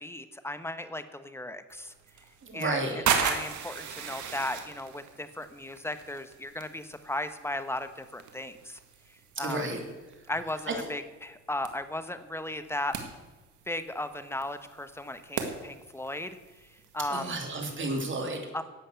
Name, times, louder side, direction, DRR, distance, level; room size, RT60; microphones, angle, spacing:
voice 1, 0.0-1.9 2.5-8.8 9.4-9.8 10.3-13.0 13.7-16.4 16.9-17.4 18.5-18.6, left 1 dB, 10° left, 11 dB, 1.1 m, -36 dB
sound 1, 1.7-17.5, right 7 dB, 75° right, 1.8 m, -38 dB
voice 2, 2.4-3.1 9.4-9.8 10.7-10.8 17.1-18.6, right 2 dB, 40° right, 3 dB, 3.1 m, -32 dB
11.5 x 8.1 x 8.1 m, 1.2 s
cardioid pair, 90°, 30 cm